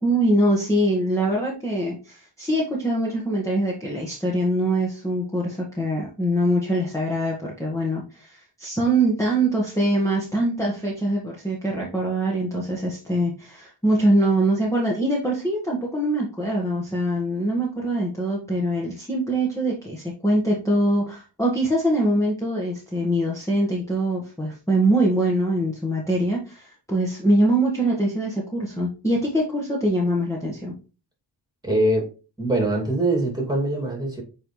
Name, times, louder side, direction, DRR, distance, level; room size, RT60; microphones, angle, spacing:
voice 1, 0.0-30.7, right 1 dB, 5° left, -4 dB, 1.6 m, -23 dB
voice 2, 31.6-32.1 32.4-34.2, right 1 dB, 10° right, -1 dB, 2.5 m, -23 dB
8.7 x 4.0 x 3.2 m, 0.34 s
wide cardioid pair, 85°, 45 cm